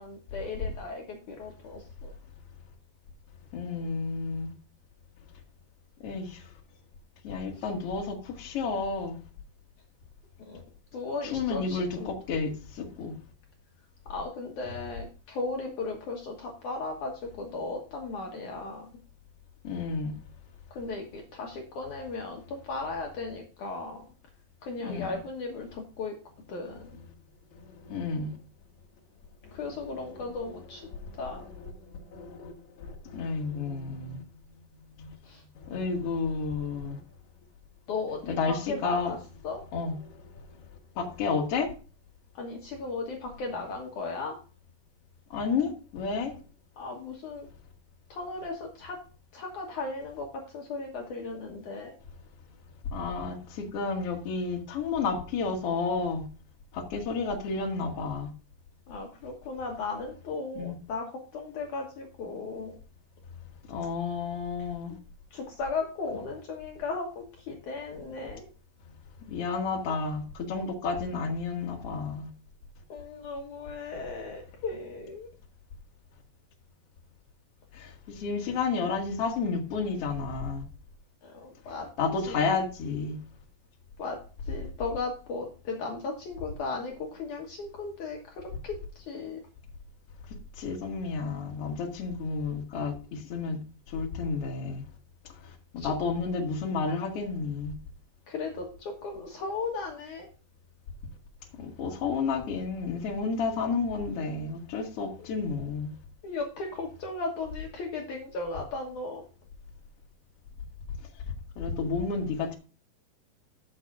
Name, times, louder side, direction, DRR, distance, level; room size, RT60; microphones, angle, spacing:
voice 1, 0.0-2.1 7.5-7.7 10.4-10.6 10.9-12.1 14.1-18.9 20.7-24.0 24.6-26.1 26.5-27.0 29.5-30.8 31.2-31.4 35.2-35.4 37.9-39.2 39.4-39.6 42.3-44.4 46.8-47.5 48.1-49.0 49.3-50.3 50.5-51.9 58.9-62.8 65.3-68.5 72.9-75.3 81.2-81.9 82.3-82.5 84.0-84.2 84.4-89.4 95.8-95.9 98.3-100.3 105.2-105.3 106.2-109.3, left 3 dB, 60° left, 0 dB, 2.6 m, -36 dB
voice 2, 3.5-4.5 6.0-6.4 7.2-9.1 11.2-13.1 19.6-20.2 24.8-25.1 27.5-28.4 29.4-29.6 30.9-31.1 31.4-34.2 35.0-35.2 35.6-37.0 38.3-39.1 39.7-40.5 41.0-41.7 45.3-46.4 52.9-56.2 56.7-58.3 60.6-60.7 63.7-64.9 69.3-72.3 77.7-80.6 82.0-83.2 90.6-93.6 93.9-94.8 95.4-97.7 101.6-105.9 111.6-112.5, left 4 dB, 45° left, 1 dB, 2.5 m, -31 dB
15.0 x 6.4 x 2.5 m, 0.36 s
omnidirectional pair, 4.3 m